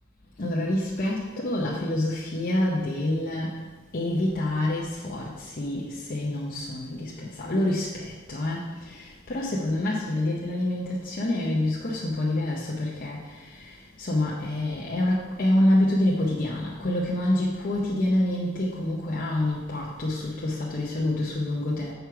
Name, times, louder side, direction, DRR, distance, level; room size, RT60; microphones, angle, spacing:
voice 1, 0.4-3.6 3.9-21.9, left 1 dB, 45° left, -5 dB, 0.8 m, -27 dB
6.5 x 4.6 x 4.7 m, 1.3 s
head